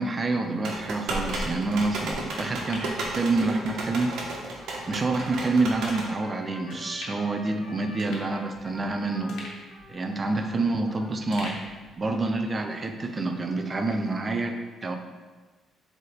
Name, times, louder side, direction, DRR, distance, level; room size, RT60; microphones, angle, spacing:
voice 1, 0.0-4.1 4.9-9.4 9.9-11.6 12.0-14.9, right 3 dB, 25° right, 6 dB, 0.5 m, -27 dB
sound 1, 0.6-6.1, right 2 dB, 80° right, 1.2 m, -33 dB
sound 2, 2.3-3.9 4.3-4.4 5.2-5.4 5.9-6.1 6.7-7.4 7.7-7.8 8.0-8.9 9.3-10.9 11.3-12.5 12.8-12.9, left 2 dB, 75° left, 1.5 m, -44 dB
Trumpet, 3.3-11.6, left 1 dB, 15° left, 0.8 m, -46 dB
7.4 x 3.5 x 4.2 m, 1.3 s
cardioid pair, 165°, 0 cm